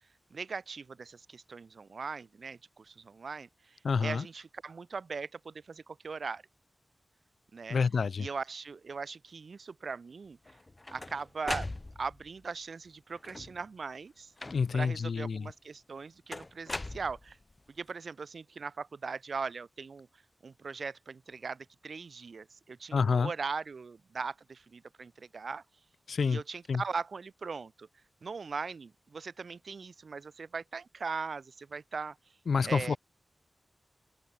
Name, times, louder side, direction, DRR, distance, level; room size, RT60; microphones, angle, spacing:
voice 1, 0.3-6.4 7.5-7.8 8.2-10.4 10.9-14.3 14.7-17.4 17.7-20.1 20.4-25.6 26.2-27.9 28.2-32.2 32.6-33.0, right 5 dB, 60° right, 2.1 m, -40 dB
voice 2, 3.8-4.2 7.7-8.3 14.5-15.5 22.9-23.3 26.1-26.4 26.7-26.8 32.5-33.0, left 5 dB, 70° left, 0.7 m, -28 dB
sound 1, 10.5-12.3 13.1-13.7 14.4-14.9 16.3-17.6, left 2 dB, 25° left, 1.0 m, -40 dB
open air
wide cardioid pair, 115°, 0 cm